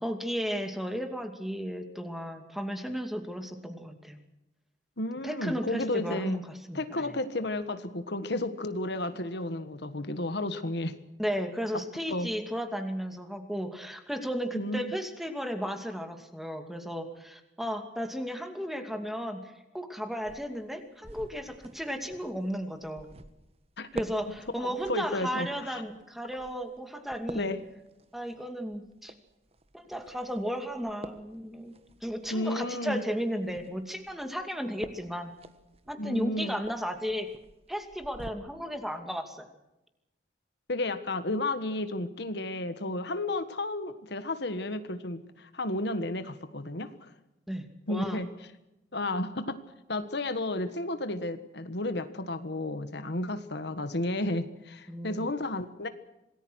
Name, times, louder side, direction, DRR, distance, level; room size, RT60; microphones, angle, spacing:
voice 1, 0.0-4.2 5.2-6.4 6.7-7.1 11.2-23.1 23.9-27.5 28.1-29.1 29.7-31.7 32.0-35.3 35.9-37.3 37.7-39.5 47.5-48.2 54.9-55.3, equal, ahead, 6 dB, 2.5 m, -34 dB
voice 2, 5.0-6.4 6.7-10.9 12.1-12.3 14.5-14.9 23.8-23.9 24.6-25.8 27.3-27.6 32.3-33.0 36.0-36.6 40.7-47.1 47.9-48.3 48.9-49.6 49.9-55.9, left 2 dB, 65° left, 10 dB, 1.5 m, -32 dB
sound 1, 20.2-38.3, right 1 dB, 35° right, 1.5 m, -49 dB
27.0 x 19.5 x 6.4 m, 0.94 s
head